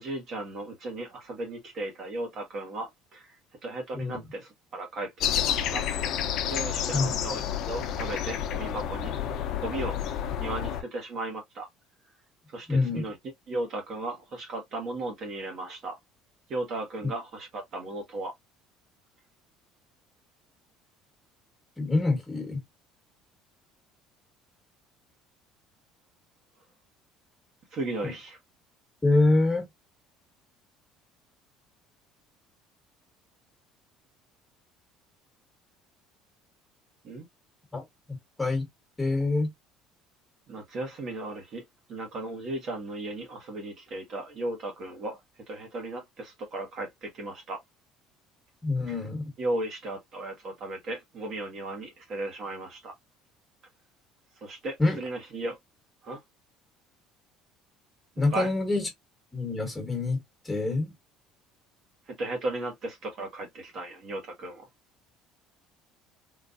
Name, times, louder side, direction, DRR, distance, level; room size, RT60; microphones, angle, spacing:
voice 1, 0.0-3.3 3.6-5.8 6.5-9.1 9.6-10.0 10.4-11.7 12.5-13.2 13.5-16.0 16.5-18.3 27.7-28.4 37.0-37.3 40.5-41.6 41.9-45.2 45.5-47.6 48.9-49.0 49.4-52.9 54.4-55.6 56.0-56.2 58.3-58.5 62.1-64.6, right 2 dB, 45° right, 1.2 m, -36 dB
sound 1, 5.2-10.8, left 9 dB, 55° left, 0.7 m, -30 dB
voice 2, 12.7-13.0 17.0-17.1 21.8-22.6 28.0-28.1 29.0-29.7 37.7-38.6 39.0-39.5 48.6-49.3 54.8-55.0 58.2-58.9 59.3-60.2 60.4-60.9, left 3 dB, 10° left, 1.5 m, -26 dB
3.9 x 2.5 x 2.5 m
cardioid pair, 145°, 0 cm